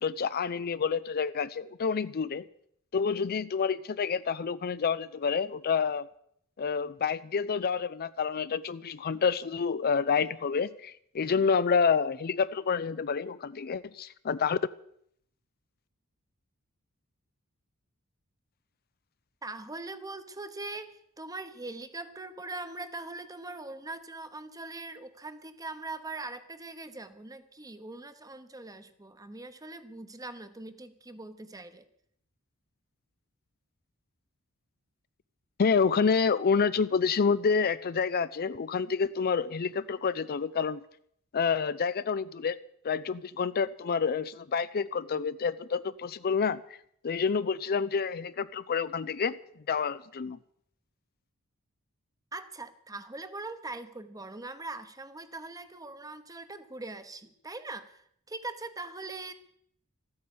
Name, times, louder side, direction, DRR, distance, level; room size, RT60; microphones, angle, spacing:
voice 1, 0.0-2.4 2.9-6.1 6.6-14.6 35.6-40.8 41.3-42.6 42.8-46.6 47.0-49.4 49.7-50.4, left 5 dB, 45° left, 15 dB, 0.5 m, -28 dB
voice 2, 19.4-20.9 21.2-31.8 52.3-59.3, right 2 dB, 15° right, 11 dB, 1.0 m, -41 dB
13.5 x 9.6 x 8.6 m, 0.69 s
head